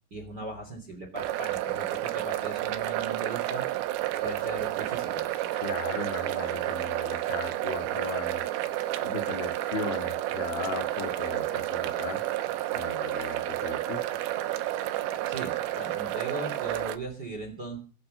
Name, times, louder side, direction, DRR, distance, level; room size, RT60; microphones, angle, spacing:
voice 1, 0.1-3.6 4.2-5.3 14.9-17.8, right 2 dB, 25° right, 4 dB, 2.7 m, -38 dB
sound 1, 1.2-17.0, right 14 dB, 90° right, 3.8 m, -31 dB
voice 2, 5.6-8.4 9.0-12.2 12.7-14.1, left 5 dB, 70° left, 5 dB, 4.6 m, -37 dB
20.5 x 9.0 x 6.5 m, 0.37 s
omnidirectional pair, 5.6 m